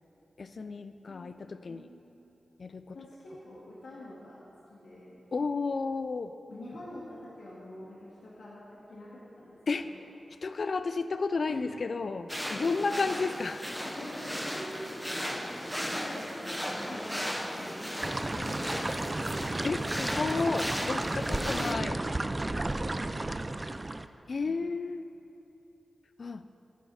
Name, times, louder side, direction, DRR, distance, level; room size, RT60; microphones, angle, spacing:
voice 1, 0.4-1.9 2.6-3.0 5.3-6.3 9.7-9.9 10.4-13.7 16.9-17.0 19.6-22.0 24.3-25.0 26.2-26.5, left 4 dB, 55° left, 10 dB, 0.3 m, -32 dB
voice 2, 1.7-2.1 2.9-4.4 4.7-5.2 6.5-10.0 11.5-11.9 12.5-12.9 13.2-13.4 13.8-15.7 15.9-19.6 21.2-21.9 22.8-23.6 24.4-24.6, left 1 dB, 90° left, -7 dB, 2.1 m, -46 dB
sound 1, 12.3-21.8, equal, 5° left, 0.8 m, -36 dB
sound 2, 18.0-24.1, right 2 dB, 25° right, 0.3 m, -33 dB
13.5 x 10.5 x 4.1 m, 2.9 s
wide cardioid pair, 125°, 0 cm